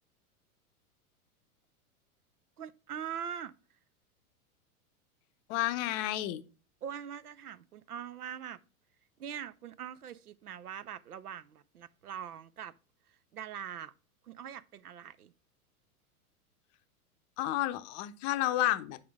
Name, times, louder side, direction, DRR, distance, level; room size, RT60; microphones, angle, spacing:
voice 1, 2.6-3.5 6.8-8.6 9.2-12.7 13.3-13.9 14.2-15.3, right 8 dB, 90° right, 0.6 m, -42 dB
voice 2, 5.5-6.4 17.4-19.0, left 14 dB, 35° left, 0.6 m, -31 dB
7.6 x 5.0 x 3.4 m
hypercardioid pair, 95°, 44 cm